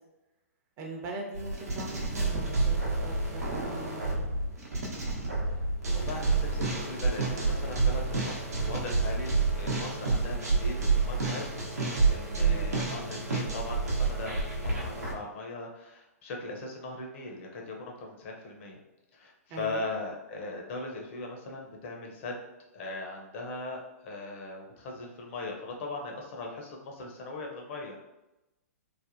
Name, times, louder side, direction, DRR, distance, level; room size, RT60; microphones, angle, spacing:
voice 1, 0.8-4.4 12.4-12.7 19.5-19.8, right 2 dB, 35° right, 0 dB, 0.6 m, -41 dB
sound 1, 1.3-15.1, right 3 dB, 85° right, 0.7 m, -29 dB
voice 2, 5.9-11.6 12.1-18.8 19.1-22.4 22.7-28.0, left 2 dB, 50° left, 0 dB, 0.7 m, -39 dB
3.3 x 2.1 x 2.5 m, 0.96 s
hypercardioid pair, 120°, 8 cm